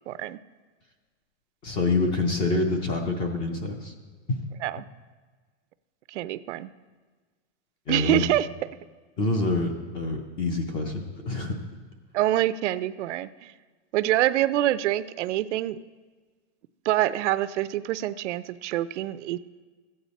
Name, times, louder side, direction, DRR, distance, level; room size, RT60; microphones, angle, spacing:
voice 1, 0.1-0.4 4.6-4.8 6.1-6.7 7.9-8.5 12.1-13.5 13.9-15.8 16.9-19.4, right 13 dB, 80° right, 15 dB, 0.5 m, -26 dB
voice 2, 1.6-3.9 4.3-4.4 7.9-8.2 9.2-11.6, left 2 dB, 15° left, 5 dB, 0.4 m, -26 dB
14.0 x 8.7 x 4.1 m, 1.4 s
supercardioid pair, 170°, 35 cm